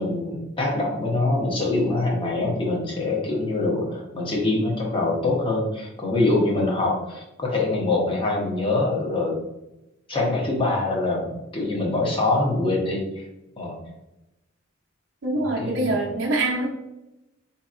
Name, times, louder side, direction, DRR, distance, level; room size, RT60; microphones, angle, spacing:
voice 1, 0.0-9.3 10.1-11.2 11.5-13.2 13.6-13.7 15.6-16.0, left 2 dB, 25° left, -2 dB, 0.8 m, -24 dB
voice 2, 15.2-16.7, right 2 dB, 65° right, -4 dB, 0.7 m, -24 dB
4.6 x 2.8 x 2.5 m, 0.94 s
head